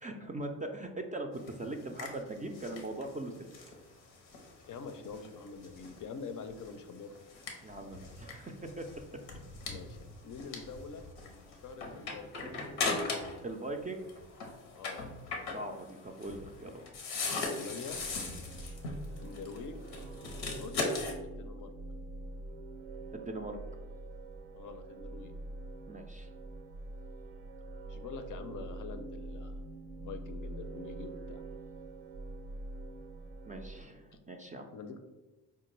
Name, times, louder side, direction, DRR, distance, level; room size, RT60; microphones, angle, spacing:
voice 1, 0.0-3.5 7.6-8.9 13.4-14.1 15.5-16.8 23.3-23.6 25.9-26.3 33.5-34.7, right 2 dB, 20° right, 4 dB, 0.4 m, -40 dB
sound 1, 1.3-13.5 13.8-21.1, left 3 dB, 90° left, 0.7 m, -40 dB
voice 2, 4.7-7.2 9.7-12.5 14.8-15.0 17.5-18.0 19.2-19.8 20.6-21.7 24.5-25.3 27.9-29.6 30.0-31.4 34.7-35.0, left 5 dB, 50° left, 7 dB, 0.5 m, -45 dB
sound 2, 17.8-33.8, right 2 dB, 90° right, 0.6 m, -45 dB
4.4 x 2.2 x 3.0 m, 1.2 s
supercardioid pair, 50°, 40 cm